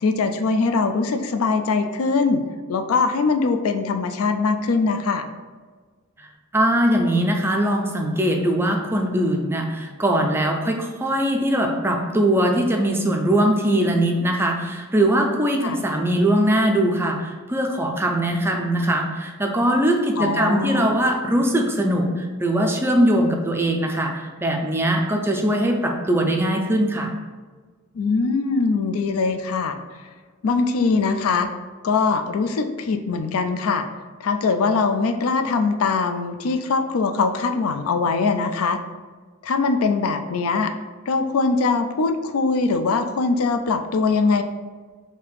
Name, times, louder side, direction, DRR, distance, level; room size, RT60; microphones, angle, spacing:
voice 1, 0.0-2.4 2.7-5.3 15.6-15.8 20.2-21.0 27.9-29.8 30.4-31.5 31.8-33.8 34.2-38.8 39.4-40.7 41.1-44.4, left 4 dB, 85° left, 8 dB, 0.4 m, -22 dB
voice 2, 6.5-27.1, right 1 dB, 10° right, 2 dB, 0.4 m, -21 dB
3.4 x 2.8 x 4.6 m, 1.4 s
head